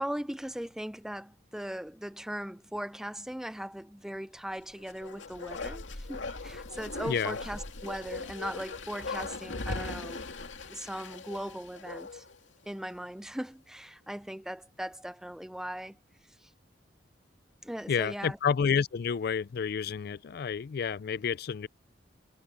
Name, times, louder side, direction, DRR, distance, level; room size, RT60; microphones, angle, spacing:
voice 1, 0.0-10.3 10.7-12.2 12.7-16.0 16.4-16.5 17.6-18.4, equal, 5° right, 0.4 m, -39 dB
Bark, 4.8-12.4 12.7-12.8, left 3 dB, 85° left, 2.3 m, -39 dB
voice 2, 7.1-7.4 17.9-21.7, left 6 dB, 55° left, 0.4 m, -30 dB
head